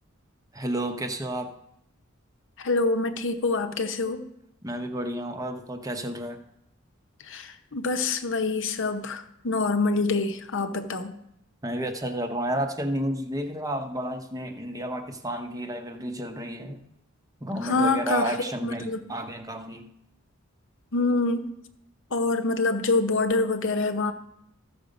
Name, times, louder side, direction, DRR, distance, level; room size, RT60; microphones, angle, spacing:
voice 1, 0.5-1.5 4.6-6.4 11.6-16.8 17.4-19.9, right 1 dB, 15° right, 6 dB, 0.9 m, -31 dB
voice 2, 2.6-4.2 7.3-11.1 17.6-18.3 18.6-19.0 20.9-21.5 22.1-24.1, left 3 dB, 65° left, 7 dB, 0.9 m, -26 dB
13.5 x 6.6 x 5.1 m, 0.78 s
head